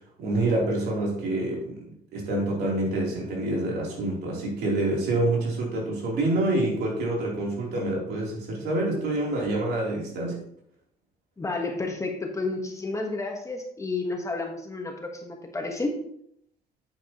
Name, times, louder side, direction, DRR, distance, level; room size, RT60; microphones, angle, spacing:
voice 1, 0.2-1.8 2.1-10.4, right 2 dB, 70° right, -2 dB, 3.4 m, -27 dB
voice 2, 11.4-16.0, left 3 dB, 20° left, 2 dB, 1.3 m, -31 dB
8.2 x 8.2 x 3.0 m, 0.70 s
cardioid pair, 110°, 17 cm